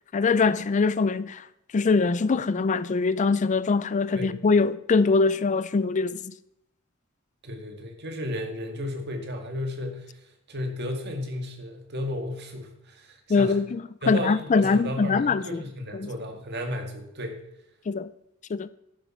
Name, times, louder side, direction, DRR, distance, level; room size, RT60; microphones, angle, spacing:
voice 1, 0.1-1.5 1.7-6.3 13.3-15.6 15.9-16.1 17.9-18.1 18.5-18.7, left 4 dB, 35° left, 0.4 m, -23 dB
voice 2, 7.4-10.1 10.5-13.6 14.0-17.4, left 1 dB, 55° right, 2.0 m, -33 dB
11.0 x 9.8 x 4.4 m
head